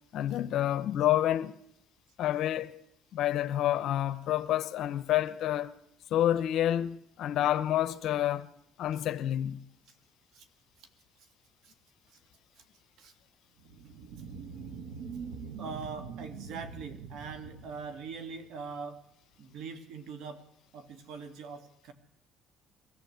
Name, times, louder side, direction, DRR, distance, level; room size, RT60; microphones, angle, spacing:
voice 1, 0.1-1.6 2.2-2.8 3.1-5.7 6.1-8.5 8.8-9.6, left 12 dB, 65° left, 0.9 m, -28 dB
sound 1, 13.6-18.6, right 6 dB, 90° right, 1.3 m, -44 dB
voice 2, 15.6-19.0 19.4-20.5 20.7-21.9, right 5 dB, 70° right, 2.3 m, -42 dB
22.5 x 14.5 x 8.1 m
cardioid pair, 110°, 0 cm